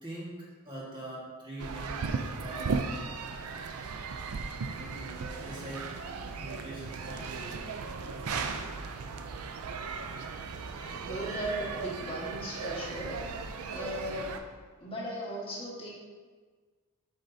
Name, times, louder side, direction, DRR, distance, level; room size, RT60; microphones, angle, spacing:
voice 1, 0.0-2.7 4.8-5.9 6.4-7.6, right 1 dB, 20° right, -6 dB, 1.9 m, -43 dB
sound 1, 1.6-14.4, right 4 dB, 75° right, 0.5 m, -36 dB
voice 2, 11.0-13.3 13.7-14.4 14.8-15.9, equal, 25° left, -5 dB, 1.7 m, -37 dB
8.0 x 6.4 x 2.8 m, 1.5 s
head